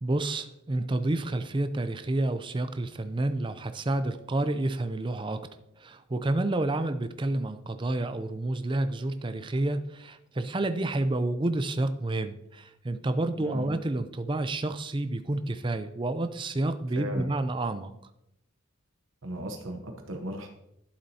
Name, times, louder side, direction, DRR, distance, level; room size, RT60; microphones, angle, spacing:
voice 1, 0.0-5.4 5.8-17.9, right 2 dB, 25° right, 10 dB, 0.5 m, -29 dB
voice 2, 13.4-13.7 16.9-17.3 19.2-20.5, equal, 70° right, 4 dB, 1.0 m, -36 dB
12.0 x 7.1 x 2.8 m, 0.82 s
head